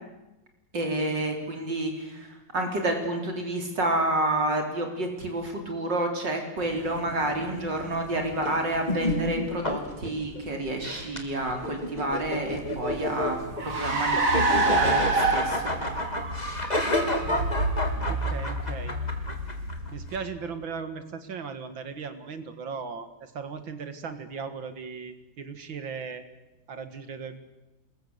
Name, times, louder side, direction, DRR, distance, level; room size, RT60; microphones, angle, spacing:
voice 1, 0.7-13.4 13.6-14.2 14.6-15.7, right 1 dB, 65° right, 3 dB, 4.5 m, -29 dB
sound 1, 6.6-20.2, left 1 dB, 20° left, 3.1 m, -31 dB
Car, 12.5-20.3, right 2 dB, 45° right, 2.8 m, -28 dB
voice 2, 18.1-19.0 19.9-26.2 26.7-27.4, right 5 dB, 80° right, 10 dB, 2.6 m, -37 dB
28.0 x 21.5 x 8.1 m, 1.0 s
omnidirectional pair, 2.1 m